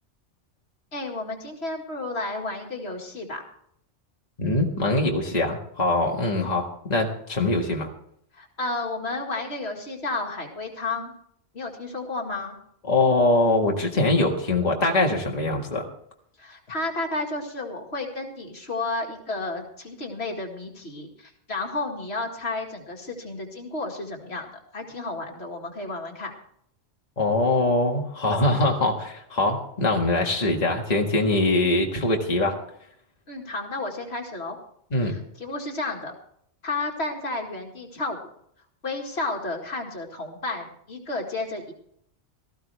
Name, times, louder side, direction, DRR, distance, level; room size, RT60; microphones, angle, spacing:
voice 1, 0.9-3.4 6.3-6.5 7.5-7.6 8.3-11.1 11.5-12.6 16.4-26.3 33.3-34.6 35.0-36.1 36.6-38.2 38.8-41.7, left 2 dB, 60° left, 2 dB, 2.3 m, -32 dB
voice 2, 4.4-7.9 12.9-15.8 27.2-32.5 34.9-35.1, left 2 dB, 35° left, 0 dB, 1.9 m, -23 dB
17.5 x 14.5 x 3.4 m, 0.68 s
omnidirectional pair, 1.2 m